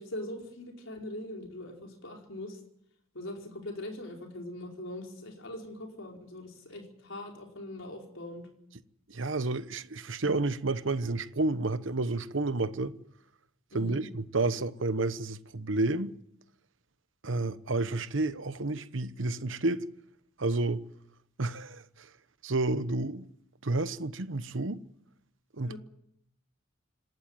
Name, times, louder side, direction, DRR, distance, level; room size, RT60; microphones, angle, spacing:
voice 1, 0.0-2.6 3.1-8.5 13.7-14.0 25.6-25.8, left 1 dB, 75° left, 4.9 m, -41 dB
voice 2, 9.1-12.9 13.7-16.1 17.2-19.9 20.4-20.8 21.4-21.8 22.4-23.3 23.6-24.8 25.6-25.8, right 2 dB, 70° right, 1.0 m, -30 dB
27.0 x 12.5 x 9.2 m
head